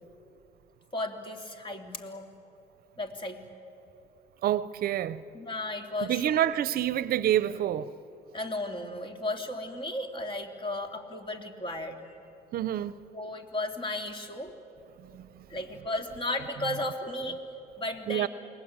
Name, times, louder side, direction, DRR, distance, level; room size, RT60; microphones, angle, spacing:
voice 1, 0.9-2.3 3.0-3.4 5.3-6.4 8.3-12.2 13.1-14.5 15.5-17.4 17.8-18.3, left 1 dB, 30° left, 2.9 m, -34 dB
voice 2, 4.4-5.2 6.1-7.9 12.5-12.9 15.1-15.3 18.1-18.3, right 11 dB, 60° right, 0.7 m, -27 dB
29.5 x 20.0 x 8.8 m
cardioid pair, 110°, 17 cm